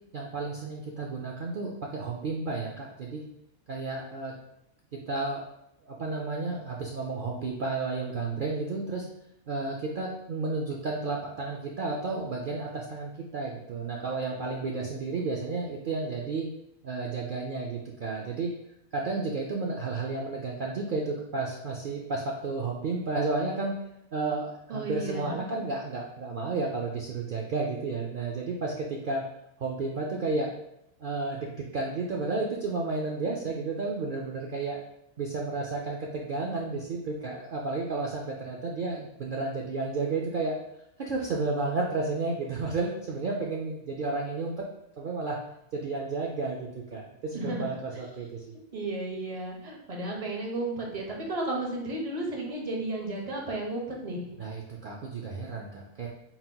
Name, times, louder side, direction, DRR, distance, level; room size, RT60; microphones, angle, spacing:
voice 1, 0.1-3.2 3.7-4.3 5.1-5.5 5.8-9.1 9.5-16.5 16.8-18.5 18.9-23.8 24.1-29.2 29.6-30.5 31.0-34.8 35.2-40.6 41.0-44.6 45.0-45.4 45.7-48.5 54.4-56.1, right 3 dB, 90° right, -1 dB, 0.4 m, -32 dB
voice 2, 24.7-25.5 47.3-47.7 48.7-54.4, right 2 dB, 35° right, -1 dB, 0.6 m, -33 dB
4.2 x 4.0 x 2.2 m, 0.82 s
omnidirectional pair, 1.4 m